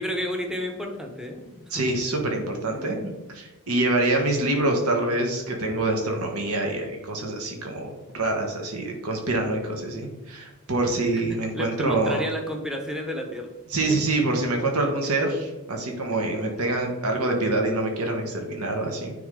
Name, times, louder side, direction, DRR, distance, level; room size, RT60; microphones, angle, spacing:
voice 1, 0.0-1.8 2.7-3.0 11.1-11.2 11.5-13.9 16.5-16.7, equal, 5° right, 2 dB, 0.9 m, -32 dB
voice 2, 1.7-12.2 13.7-19.1, right 2 dB, 75° right, 2 dB, 1.3 m, -26 dB
9.6 x 3.6 x 3.7 m, 1.1 s
head